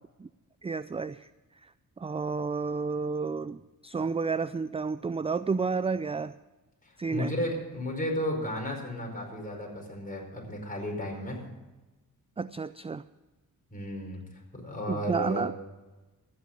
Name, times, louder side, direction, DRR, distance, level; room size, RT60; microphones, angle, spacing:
voice 1, 0.6-1.3 1.6-6.3 7.0-7.3 12.4-13.0 14.9-15.6, right 4 dB, 15° right, 14 dB, 0.4 m, -31 dB
voice 2, 6.8-11.4 13.7-14.2 14.5-15.5, left 1 dB, 25° left, 0 dB, 5.0 m, -33 dB
13.5 x 9.8 x 7.7 m, 1.1 s
cardioid pair, 80°, 35 cm